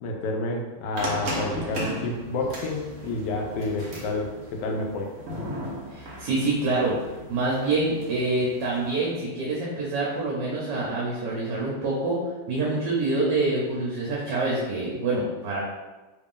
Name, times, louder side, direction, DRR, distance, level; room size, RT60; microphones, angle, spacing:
voice 1, 0.0-5.1, left 2 dB, 85° left, 2 dB, 1.2 m, -29 dB
sound 1, 1.0-9.1, equal, 55° right, 0.8 m, -36 dB
voice 2, 5.9-6.9 7.3-12.2 12.5-15.6, right 2 dB, 80° right, -4 dB, 1.4 m, -26 dB
3.4 x 2.5 x 3.5 m, 1.2 s
omnidirectional pair, 1.8 m